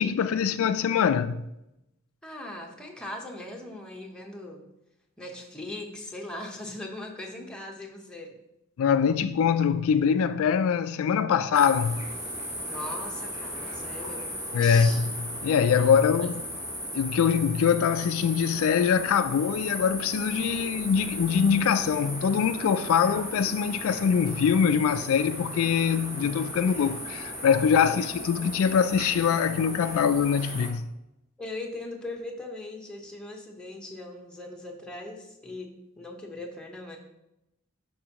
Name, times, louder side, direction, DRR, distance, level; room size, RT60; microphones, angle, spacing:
voice 1, 0.0-1.4 8.8-12.0 14.5-15.0 15.4-16.4 16.9-30.9, left 7 dB, 65° left, 0.3 m, -23 dB
voice 2, 2.2-4.6 5.2-8.4 12.6-14.3 14.6-15.1 15.8-16.4 27.9-28.2 31.4-37.0, left 2 dB, 5° left, 1.0 m, -40 dB
sound 1, 11.5-30.7, equal, 10° right, 2.3 m, -36 dB
11.0 x 4.5 x 2.9 m
head